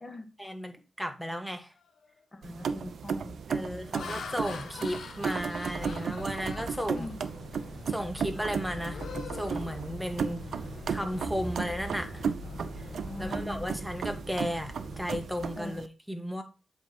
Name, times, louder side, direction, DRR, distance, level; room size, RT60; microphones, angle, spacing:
voice 1, 0.4-1.7 3.5-7.2 7.9-9.0 9.3-10.4 10.9-12.3 13.2-16.4, equal, ahead, 1.6 m, -34 dB
Laughter, 1.8-2.1 2.7-3.0 3.6-7.4 7.8-8.1 8.5-10.4, left 6 dB, 90° left, 1.0 m, -45 dB
voice 2, 2.3-4.2 6.9-7.2 13.0-13.7 15.6-15.8, left 1 dB, 35° left, 1.7 m, -41 dB
sound 1, 2.4-15.9, right 6 dB, 85° right, 0.5 m, -35 dB
Motor vehicle (road), 5.7-15.3, left 2 dB, 65° left, 1.2 m, -43 dB
7.7 x 3.5 x 6.0 m
cardioid pair, 60°, 0 cm